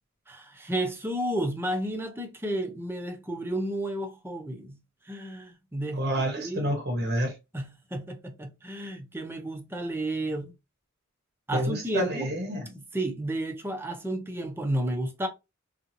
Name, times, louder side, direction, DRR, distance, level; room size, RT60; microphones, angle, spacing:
voice 1, 0.3-4.8 5.0-6.0 6.4-6.7 7.5-10.5 11.5-12.3 12.7-15.3, right 1 dB, 10° right, 0.6 m, -32 dB
voice 2, 6.0-7.4 11.5-12.7, right 1 dB, 50° right, 0.8 m, -28 dB
2.7 x 2.4 x 2.6 m
head